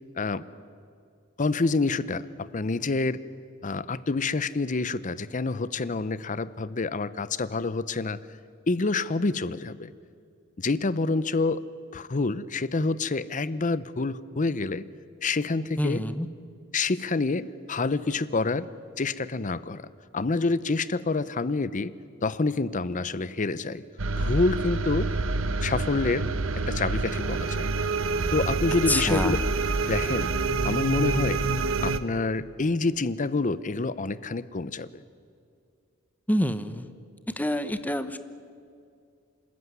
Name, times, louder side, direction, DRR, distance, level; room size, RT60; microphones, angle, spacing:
voice 1, 1.4-3.2 3.6-8.2 8.7-9.9 10.6-11.6 11.9-14.8 15.2-16.0 16.7-18.7 19.0-21.9 22.2-23.8 24.1-25.2 25.6-26.3 26.7-27.7 28.3-29.4 29.8-30.3 30.6-31.4 31.8-35.0, left 3 dB, 40° left, 16 dB, 0.7 m, -27 dB
voice 2, 15.8-16.3 28.9-29.4 36.3-36.9 37.3-38.2, left 1 dB, 10° left, 11 dB, 0.9 m, -27 dB
sound 1, 24.0-32.0, right 3 dB, 70° right, 1.0 m, -27 dB
26.5 x 14.0 x 9.6 m, 2.4 s
head